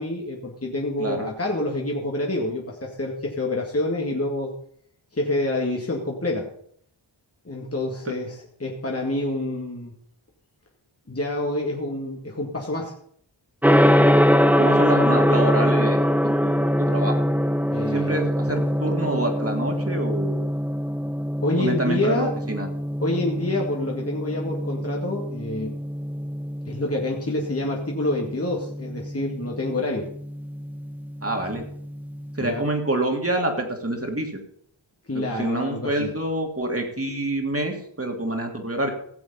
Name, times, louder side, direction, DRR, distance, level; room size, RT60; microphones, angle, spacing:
voice 1, 0.0-4.5 5.1-6.5 7.5-9.9 11.1-12.9 17.7-18.2 21.4-22.3 23.0-25.7 26.7-30.1 32.4-32.7 35.1-36.1, left 2 dB, 30° left, -1 dB, 2.1 m, -27 dB
Gong, 13.6-32.6, equal, 5° right, 1.0 m, -23 dB
voice 2, 14.5-17.2 17.9-20.4 21.6-22.7 31.2-31.6 32.4-34.3 35.1-38.9, right 1 dB, 30° right, 3 dB, 3.0 m, -27 dB
17.0 x 7.0 x 5.6 m, 0.66 s
cardioid pair, 45°, 47 cm